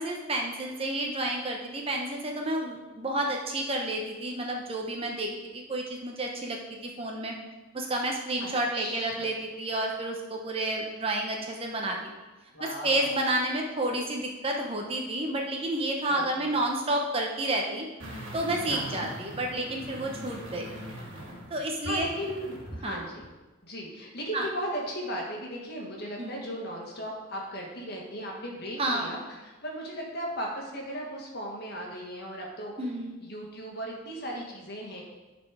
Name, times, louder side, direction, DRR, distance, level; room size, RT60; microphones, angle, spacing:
voice 1, 0.0-7.3 7.7-12.0 12.6-17.9 18.3-20.7 21.5-22.1 22.8-23.0 24.3-24.5 26.2-26.4 28.8-29.1 32.8-33.2, right 1 dB, 25° right, 1 dB, 0.9 m, -30 dB
voice 2, 8.4-9.3 12.5-13.1 16.1-16.5 18.7-19.1 21.8-23.2 23.6-32.9 33.2-35.0, equal, 50° left, -1 dB, 1.7 m, -37 dB
sound 1, 18.0-22.9 23.2-23.3, right 1 dB, 60° right, 2.1 m, -41 dB
10.5 x 4.4 x 4.9 m, 1.1 s
head